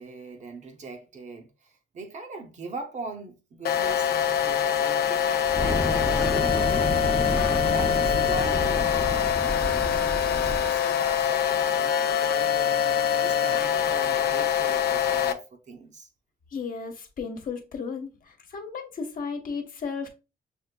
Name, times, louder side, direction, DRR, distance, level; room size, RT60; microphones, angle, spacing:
voice 1, 0.0-6.8 7.3-12.7 13.2-16.1, right 3 dB, 45° right, 0.6 m, -41 dB
sound 1, 3.6-15.3, left 9 dB, 75° left, 0.5 m, -24 dB
Fire, 5.4-10.7, left 1 dB, 15° left, 0.6 m, -29 dB
voice 2, 16.5-20.1, left 5 dB, 60° left, 1.0 m, -34 dB
6.4 x 2.6 x 2.2 m
wide cardioid pair, 140°, 17 cm